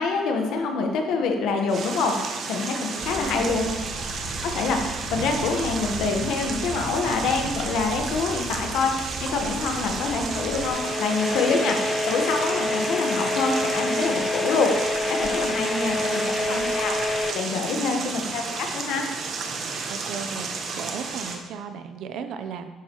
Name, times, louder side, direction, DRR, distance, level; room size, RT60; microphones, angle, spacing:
voice 1, 0.0-3.7 4.4-14.7 15.1-16.2 16.5-16.9 17.3-19.1, left 4 dB, 80° left, 3 dB, 1.3 m, -26 dB
sound 1, 1.7-21.4, right 4 dB, 55° right, 1.1 m, -33 dB
voice 2, 2.9-3.9 9.2-9.4 9.7-9.8 10.2-10.4 15.4-16.8 17.7-18.1 19.6-22.7, right 6 dB, 75° right, 8 dB, 0.7 m, -37 dB
sound 2, 3.0-10.7, right 2 dB, 35° right, 1.6 m, -37 dB
sound 3, 9.7-17.3, left 2 dB, 30° left, 0.5 m, -27 dB
10.5 x 7.3 x 3.1 m, 1.3 s
cardioid pair, 105°, 0 cm